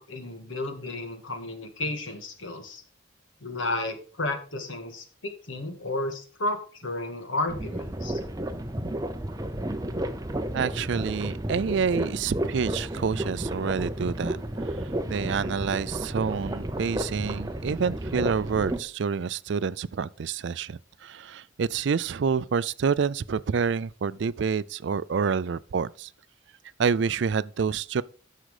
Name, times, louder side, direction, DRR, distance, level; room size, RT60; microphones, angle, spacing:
voice 1, 0.0-2.8 3.4-8.2, left 2 dB, 80° left, 1.8 m, -32 dB
sound 1, 7.5-18.8, right 1 dB, 20° right, 0.7 m, -32 dB
voice 2, 10.5-26.1 26.8-28.0, right 6 dB, 65° right, 0.4 m, -28 dB
9.9 x 6.5 x 4.9 m
head